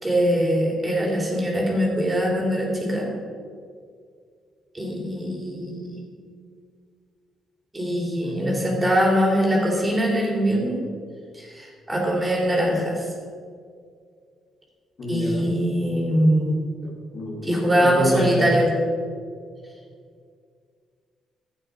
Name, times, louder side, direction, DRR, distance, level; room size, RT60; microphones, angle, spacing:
voice 1, 0.0-3.1 4.7-6.0 7.7-10.8 11.3-13.1 15.1-16.7 17.5-18.7, equal, 20° right, -2 dB, 3.4 m, -22 dB
voice 2, 8.2-8.6 15.0-15.5 16.8-18.6, equal, 50° left, -2 dB, 2.7 m, -28 dB
12.0 x 8.4 x 4.9 m, 2.1 s
cardioid pair, 90°, 0 cm